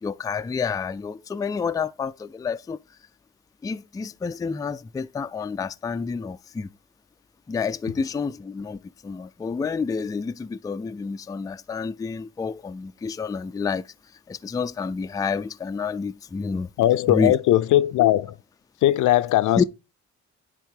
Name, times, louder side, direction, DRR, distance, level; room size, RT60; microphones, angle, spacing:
voice 1, 0.0-2.8 3.6-6.7 7.5-13.9 14.3-16.7 17.1-17.4 19.6-19.7, left 5 dB, 10° left, 0.3 m, -29 dB
voice 2, 16.8-18.3 18.8-19.6, left 14 dB, 75° left, 0.6 m, -19 dB
10.0 x 3.6 x 4.6 m
cardioid pair, 90°, 30 cm